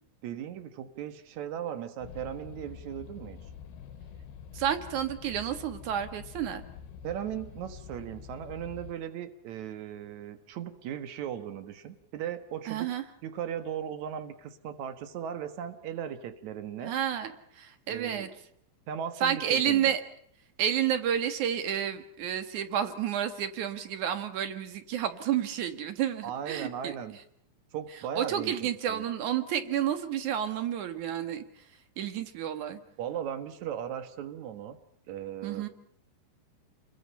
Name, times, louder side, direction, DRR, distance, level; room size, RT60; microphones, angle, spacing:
voice 1, 0.2-3.4 7.0-12.9 13.2-16.9 17.9-18.3 18.9-20.0 26.2-27.2 27.7-28.5 28.9-29.0 33.0-34.8 35.1-35.6, right 9 dB, 85° right, 7 dB, 1.6 m, -37 dB
sound 1, 2.0-8.9, left 8 dB, 70° left, 2.5 m, -46 dB
voice 2, 4.5-6.6 12.7-13.0 16.8-18.3 19.2-20.0 20.6-27.0 28.2-31.6 32.0-32.8 35.4-35.7, right 9 dB, 60° right, 8 dB, 2.1 m, -30 dB
30.0 x 22.5 x 5.6 m, 0.71 s
omnidirectional pair, 5.7 m